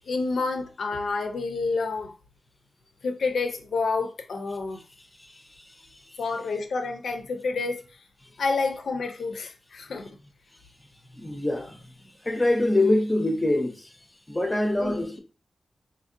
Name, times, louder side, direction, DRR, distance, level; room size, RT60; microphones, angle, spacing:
voice 1, 0.1-2.1 3.0-4.8 6.2-7.8 8.4-10.2 14.8-15.0, left 4 dB, 65° left, 0.5 m, -29 dB
voice 2, 11.2-11.9 12.2-13.9 14.3-15.2, left 1 dB, 15° left, 0.5 m, -24 dB
4.1 x 2.5 x 2.5 m
wide cardioid pair, 165°, 0 cm